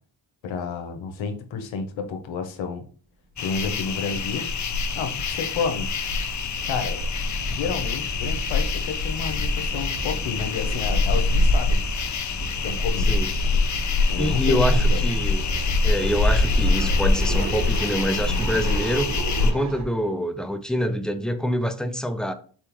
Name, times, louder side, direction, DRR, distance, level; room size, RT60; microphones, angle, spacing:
voice 1, 0.4-2.9 3.4-4.5 4.9-5.9 6.7-7.0 7.5-11.8 12.6-13.2 14.1-15.0, left 5 dB, 90° left, 0.9 m, -30 dB
sound 1, 3.3-3.4 3.7-3.8 4.1-19.8, right 2 dB, 55° right, 1.2 m, -33 dB
sound 2, 3.4-19.5, left 3 dB, 40° left, 0.6 m, -24 dB
voice 2, 14.2-15.4 15.8-19.1 19.4-22.3, equal, ahead, 0.3 m, -26 dB
4.3 x 3.6 x 3.0 m
cardioid pair, 85°, 45 cm